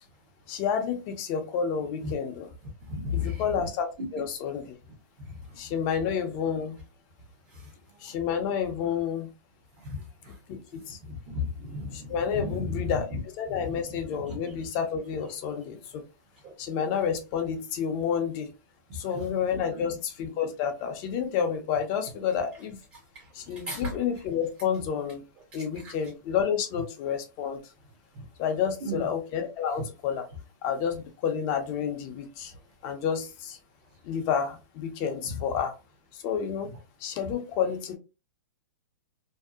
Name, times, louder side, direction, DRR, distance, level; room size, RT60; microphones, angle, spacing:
voice 1, 0.5-2.5 3.1-3.9 4.1-4.6 5.6-6.8 8.0-9.3 10.5-11.0 11.9-13.1 13.4-16.0 16.6-18.5 18.9-22.8 23.3-25.2 25.5-27.6 28.4-30.3 30.6-32.5 32.8-33.6 34.0-35.7 36.2-36.7 37.0-38.0, left 7 dB, 35° left, 6 dB, 0.6 m, -30 dB
voice 2, 2.8-3.5 5.2-5.6 7.5-7.7 8.0-8.1 9.8-10.4 10.9-12.8 13.1-13.2 13.5-14.0 14.2-14.4 16.4-16.5 18.9-19.3 19.7-19.8 22.9-24.0 25.5-25.9 28.1-28.2 28.8-29.1 35.2-35.3, left 3 dB, 35° right, 1 dB, 0.8 m, -36 dB
2.6 x 2.0 x 2.3 m, 0.28 s
hypercardioid pair, 140°, 11 cm